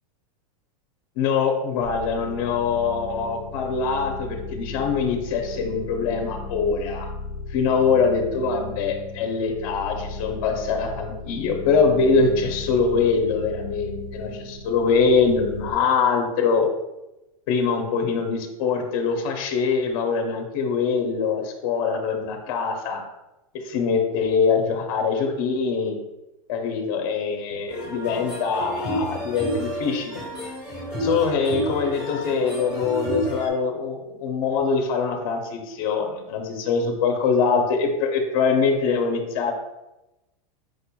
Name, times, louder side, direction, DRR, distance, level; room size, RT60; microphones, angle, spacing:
voice 1, 1.2-7.1 7.5-16.7 17.5-23.0 23.5-25.9 26.5-30.2 31.0-39.5, left 5 dB, 40° left, 3 dB, 0.6 m, -23 dB
sound 1, 1.8-15.7, left 3 dB, 40° right, 0.7 m, -36 dB
sound 2, 27.7-33.5, right 1 dB, 5° right, 1.4 m, -30 dB
4.9 x 4.2 x 2.2 m, 0.97 s
supercardioid pair, 165°, 19 cm